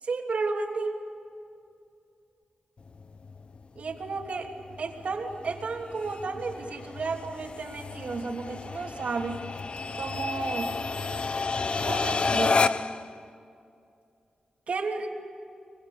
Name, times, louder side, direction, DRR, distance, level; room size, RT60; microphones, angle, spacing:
voice 1, 0.0-1.0 3.7-4.5 4.8-9.4 9.9-10.7 11.8-12.7 14.7-15.1, right 4 dB, 60° right, 2 dB, 3.1 m, -32 dB
sound 1, 2.8-13.1, left 4 dB, 45° left, 0.8 m, -31 dB
25.0 x 24.0 x 8.7 m, 2.5 s
wide cardioid pair, 115°, 3 cm